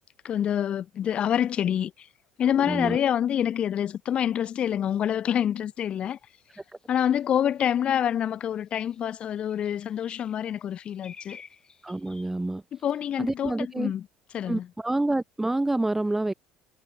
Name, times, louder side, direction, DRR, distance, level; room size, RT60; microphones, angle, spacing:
voice 1, 0.2-2.1 2.4-6.2 6.9-11.4 12.7-14.1 14.3-14.7, left 9 dB, 50° left, 1.4 m, -27 dB
voice 2, 2.7-3.0 11.8-12.6 13.2-13.9 14.5-16.3, right 2 dB, 10° right, 1.7 m, -27 dB
sound 1, 5.8-5.9 6.5-6.8 7.7-7.8 8.2-12.3, left 5 dB, 30° left, 7.8 m, -52 dB
supercardioid pair, 80°, 2 cm